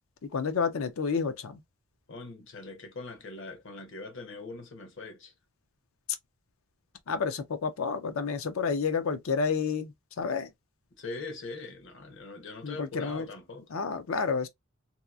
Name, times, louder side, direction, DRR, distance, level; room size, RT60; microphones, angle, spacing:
voice 1, 0.2-1.6 7.1-9.9 10.2-10.5 12.6-13.3 13.7-14.5, left 5 dB, 80° left, 0.5 m, -30 dB
voice 2, 2.1-5.3 11.0-13.7, left 3 dB, 65° left, 0.9 m, -42 dB
2.8 x 2.3 x 2.3 m
head